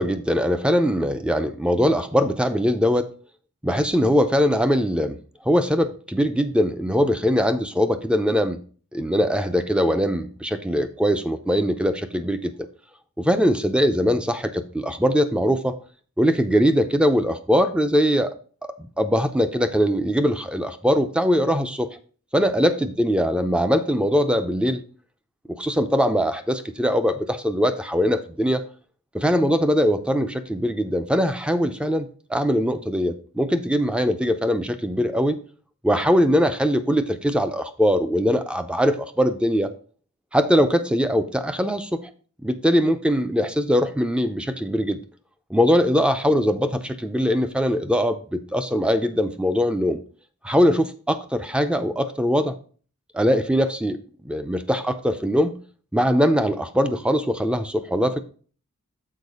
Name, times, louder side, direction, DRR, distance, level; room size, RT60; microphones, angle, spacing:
voice 1, 0.0-3.1 3.6-8.6 8.9-12.5 13.2-15.8 16.2-18.3 19.0-21.9 22.3-24.8 25.5-28.6 29.1-35.4 35.8-39.7 40.3-42.0 42.4-45.0 45.5-50.0 50.4-52.6 53.1-54.0 54.2-55.6 55.9-58.2, equal, 5° right, 9 dB, 0.4 m, -21 dB
6.5 x 4.3 x 5.4 m, 0.42 s
head